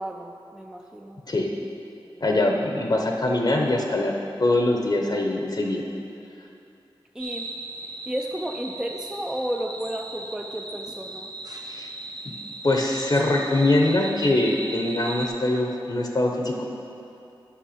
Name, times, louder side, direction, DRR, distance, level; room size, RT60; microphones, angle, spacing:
voice 1, 0.0-1.2 7.2-7.5 8.1-11.3, right 1 dB, 5° right, 3 dB, 0.3 m, -32 dB
voice 2, 2.2-4.1 4.4-5.8 11.7-11.9 12.6-16.6, left 2 dB, 50° left, 1 dB, 0.7 m, -23 dB
sound 1, 7.2-15.3, right 2 dB, 45° right, 0.7 m, -37 dB
8.7 x 5.6 x 5.0 m, 2.7 s
wide cardioid pair, 85°, 9 cm